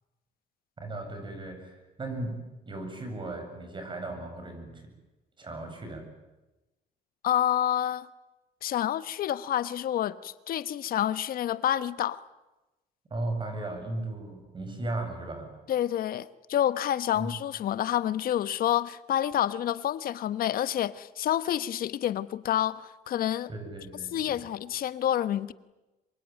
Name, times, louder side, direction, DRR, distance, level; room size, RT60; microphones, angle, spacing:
voice 1, 0.8-4.8 5.4-6.1 13.1-15.5 17.1-17.3 23.5-24.5, right 2 dB, 30° right, 7.9 m, -36 dB
voice 2, 7.2-8.1 8.6-12.2 15.7-23.5 24.1-25.5, left 11 dB, 60° left, 1.1 m, -28 dB
26.0 x 23.0 x 9.3 m
cardioid pair, 110°, 17 cm